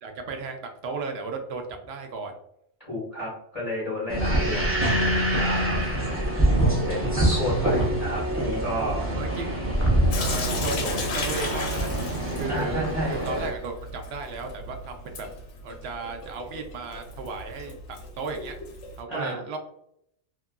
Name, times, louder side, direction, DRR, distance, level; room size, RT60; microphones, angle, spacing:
voice 1, 0.0-2.3 9.1-9.6 10.2-11.9 12.3-15.3 15.6-18.5 19.0-19.6, right 4 dB, 70° right, 4 dB, 0.8 m, -35 dB
voice 2, 2.8-5.8 6.9-9.1 12.5-13.1 19.1-19.4, equal, 30° left, -7 dB, 1.1 m, -32 dB
sound 1, 4.1-13.5, right 1 dB, 20° right, 0.4 m, -25 dB
Sink (filling or washing) / Drip, 10.1-19.0, left 2 dB, 85° left, 0.9 m, -35 dB
2.8 x 2.4 x 2.2 m, 0.73 s
omnidirectional pair, 1.2 m